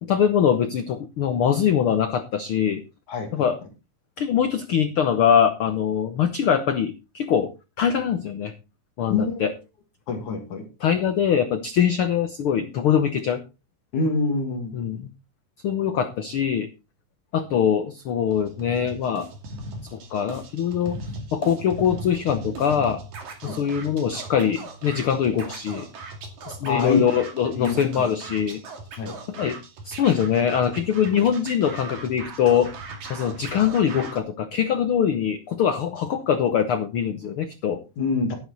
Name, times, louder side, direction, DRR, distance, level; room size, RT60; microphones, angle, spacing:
voice 1, 0.0-2.8 3.3-3.6 4.2-7.5 7.8-8.5 9.0-9.5 10.8-13.4 14.7-15.1 15.6-16.7 17.3-19.3 19.9-21.0 21.3-23.0 23.4-25.9 26.5-28.6 29.3-29.6 29.8-32.7 33.1-37.8, left 8 dB, 90° left, 10 dB, 1.1 m, -23 dB
voice 2, 9.1-9.4 10.1-10.6 13.9-14.7 23.5-23.6 26.7-27.0 27.6-28.1 29.0-29.2 38.0-38.3, left 4 dB, 65° left, 4 dB, 3.5 m, -25 dB
Scratching (performance technique), 18.3-34.2, right 2 dB, 60° right, 3.8 m, -39 dB
11.0 x 11.0 x 4.1 m, 0.28 s
omnidirectional pair, 3.8 m